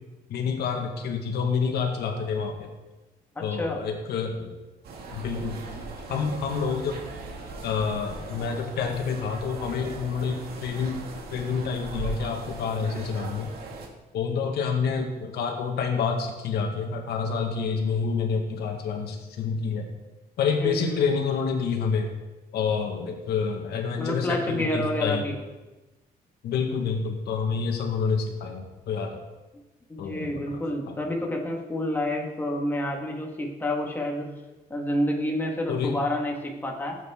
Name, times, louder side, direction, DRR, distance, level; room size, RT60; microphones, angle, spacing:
voice 1, 0.3-2.7 3.4-4.5 5.1-5.6 6.1-7.0 7.6-11.0 11.3-13.5 14.1-19.9 20.4-22.1 22.5-25.2 26.4-29.2 30.0-31.1 35.7-36.0, left 5 dB, 90° left, 3 dB, 1.6 m, -28 dB
voice 2, 3.3-3.8 20.6-21.0 24.0-25.4 29.9-34.3 34.7-37.0, left 1 dB, 10° left, 0 dB, 1.7 m, -29 dB
sound 1, 4.8-13.9, right 3 dB, 75° right, 2.1 m, -39 dB
17.0 x 8.4 x 3.6 m, 1.1 s
cardioid pair, 160°, 16 cm